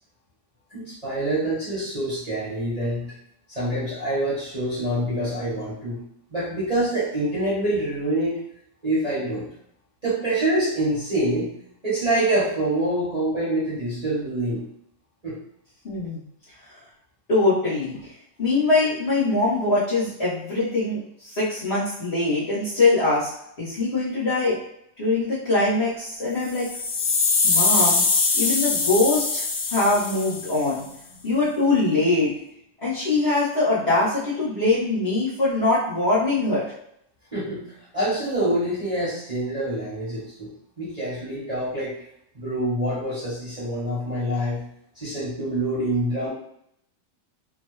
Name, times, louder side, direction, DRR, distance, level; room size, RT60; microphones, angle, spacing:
voice 1, 0.7-3.1 3.5-6.0 6.3-8.4 8.8-9.5 10.0-11.5 11.8-14.6 15.2-15.3 37.3-37.7 37.9-40.5 40.8-41.9 42.3-44.6 44.9-46.3, right 1 dB, 25° right, -10 dB, 1.0 m, -26 dB
voice 2, 15.8-16.2 17.3-18.0 18.4-23.3 23.6-24.6 25.0-26.7 27.4-28.0 28.3-29.4 29.7-30.9 31.2-32.3 32.8-36.6, left 2 dB, 40° left, -9 dB, 1.1 m, -22 dB
sound 1, 26.5-30.7, left 4 dB, 75° left, 1.2 m, -22 dB
3.0 x 2.2 x 3.1 m, 0.73 s
omnidirectional pair, 1.9 m